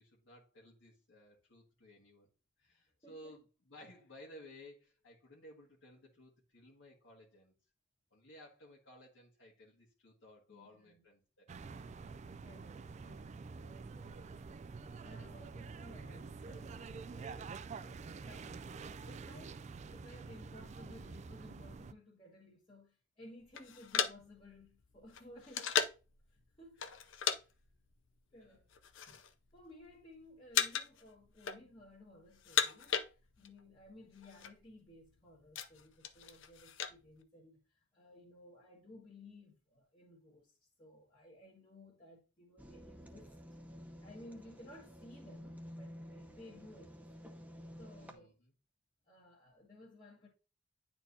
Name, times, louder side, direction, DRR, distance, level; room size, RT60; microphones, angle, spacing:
voice 1, 0.0-2.3 2.6-7.5 8.1-11.9 28.3-28.6 48.0-48.5, left 1 dB, 70° left, 1.7 m, -57 dB
voice 2, 3.0-3.4 10.5-11.0 12.4-14.4 15.0-17.5 17.8-19.6 19.9-25.7 26.3-26.8 28.3-28.7 29.1-29.2 29.5-43.4 44.0-47.1 47.8-48.4 49.0-50.3, left 1 dB, 30° left, 1.5 m, -57 dB
sound 1, 11.5-21.9, right 4 dB, 35° right, 0.3 m, -47 dB
sound 2, 23.5-26.1 26.8-27.4 27.7-27.9 28.6-29.3 29.6-30.1 30.5-31.0 31.3-32.0 32.3-33.6 33.9-34.0 34.2-34.5 35.0-37.0, left 8 dB, 85° left, 0.6 m, -36 dB
sound 3, 42.6-48.1, equal, 10° right, 0.7 m, -52 dB
9.7 x 4.4 x 2.7 m
head